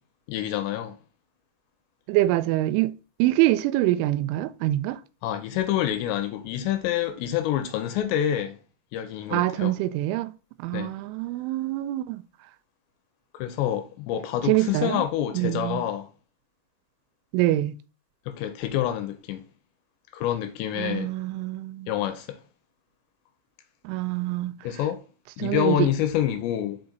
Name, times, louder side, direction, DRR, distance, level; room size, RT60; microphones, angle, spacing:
voice 1, 0.3-1.0 5.2-8.6 8.9-9.8 10.7-10.9 13.3-16.1 18.3-19.5 20.1-21.1 21.9-22.4 24.6-25.0 25.4-26.8, left 11 dB, 85° left, 2.7 m, -27 dB
voice 2, 2.1-5.0 9.3-10.3 10.6-12.2 14.5-15.0 15.3-15.8 17.3-17.7 20.8-21.9 23.8-24.6 25.4-25.9, right 16 dB, 90° right, 3.0 m, -25 dB
5.9 x 5.1 x 3.9 m
omnidirectional pair, 5.4 m